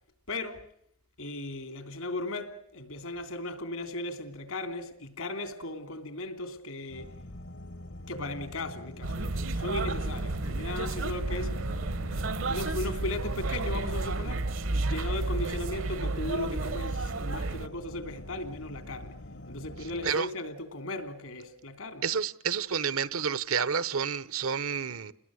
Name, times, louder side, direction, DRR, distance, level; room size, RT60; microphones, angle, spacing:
voice 1, 0.3-0.7 1.2-7.1 8.1-11.6 12.5-19.2 19.5-22.0, left 2 dB, 80° left, 3.2 m, -37 dB
sound 1, 6.9-20.1, left 1 dB, 65° left, 1.0 m, -45 dB
sound 2, 9.0-17.7, right 2 dB, 65° right, 0.9 m, -32 dB
voice 2, 22.0-25.1, right 6 dB, 85° right, 1.0 m, -29 dB
29.0 x 21.0 x 6.4 m
head